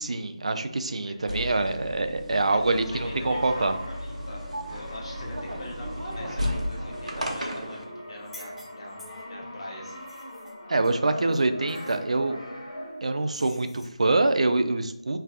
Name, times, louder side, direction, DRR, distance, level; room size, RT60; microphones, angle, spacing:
voice 1, 0.0-3.7 10.7-12.4 13.0-15.2, right 2 dB, 65° right, 8 dB, 0.4 m, -25 dB
voice 2, 1.0-1.7 2.5-4.4 4.7-10.0, left 1 dB, 50° left, -2 dB, 1.3 m, -43 dB
sound 1, 1.3-7.8, equal, 85° right, 1.0 m, -34 dB
Brass instrument, 2.4-13.3, left 1 dB, 70° left, 1.5 m, -41 dB
sound 2, 8.2-9.4 9.9-11.4 11.7-12.0 13.3-14.0, left 1 dB, 5° left, 0.7 m, -49 dB
4.5 x 3.3 x 2.4 m, 0.79 s
figure-of-eight pair, 165°, 4 cm